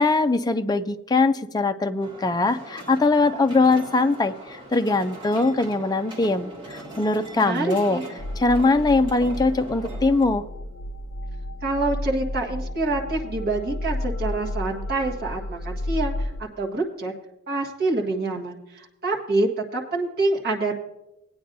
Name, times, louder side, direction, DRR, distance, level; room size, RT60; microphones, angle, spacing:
voice 1, 0.0-8.0 8.4-10.4, left 3 dB, 20° left, 9 dB, 0.4 m, -21 dB
sound 1, 2.0-10.2, right 1 dB, 25° right, 2.1 m, -41 dB
voice 2, 7.3-8.0 11.6-16.3 16.6-17.1 17.5-20.7, right 2 dB, 45° right, 0 dB, 1.6 m, -26 dB
sound 2, 8.2-16.4, left 1 dB, 65° left, 0.6 m, -32 dB
18.5 x 9.3 x 2.6 m, 0.95 s
head